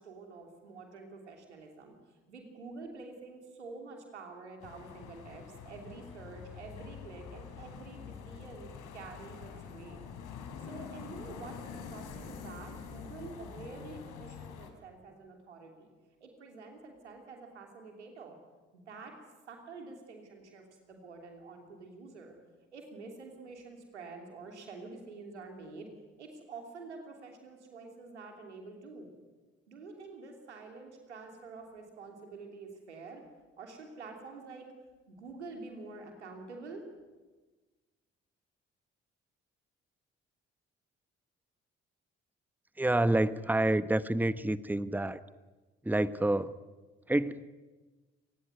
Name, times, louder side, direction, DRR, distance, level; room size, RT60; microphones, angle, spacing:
voice 1, 0.0-1.9 2.3-10.0 10.6-15.9 16.2-18.4 18.7-19.2 19.5-22.3 22.7-25.9 26.2-29.1 29.7-33.2 33.6-34.7 35.1-36.8, right 3 dB, 90° right, 3 dB, 3.1 m, -48 dB
sound 1, 4.6-14.7, left 7 dB, 65° left, 3.4 m, -46 dB
voice 2, 42.8-45.2 45.8-46.5 47.1-47.4, right 1 dB, 5° right, 15 dB, 1.1 m, -28 dB
28.5 x 19.5 x 9.5 m, 1.3 s
figure-of-eight pair, 40°, 34 cm